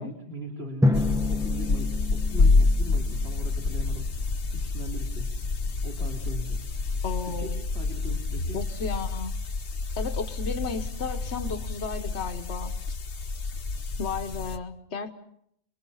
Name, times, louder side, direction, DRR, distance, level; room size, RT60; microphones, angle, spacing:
voice 1, 0.0-4.1 4.5-5.3 5.8-6.6 7.3-8.6, right 1 dB, 60° right, 0 dB, 3.6 m, -40 dB
Drum, 0.8-3.5, left 2 dB, 5° right, 0.7 m, -28 dB
sound 1, 0.9-14.6, left 3 dB, 60° left, 1.3 m, -28 dB
voice 2, 7.0-7.6 8.5-9.3 10.0-13.0 14.0-15.1, left 5 dB, 75° left, 6 dB, 1.5 m, -34 dB
28.5 x 22.5 x 5.6 m, 0.73 s
omnidirectional pair, 1.1 m